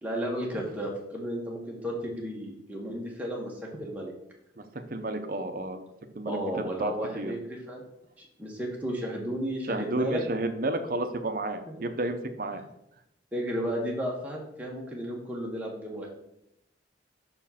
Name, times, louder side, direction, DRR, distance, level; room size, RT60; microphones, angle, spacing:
voice 1, 0.0-4.1 6.2-7.8 8.2-10.2 13.3-16.1, equal, 10° right, -2 dB, 1.4 m, -33 dB
voice 2, 4.9-5.8 6.1-7.3 9.6-12.6, right 2 dB, 50° right, 8 dB, 0.7 m, -31 dB
6.1 x 4.4 x 5.7 m, 0.82 s
head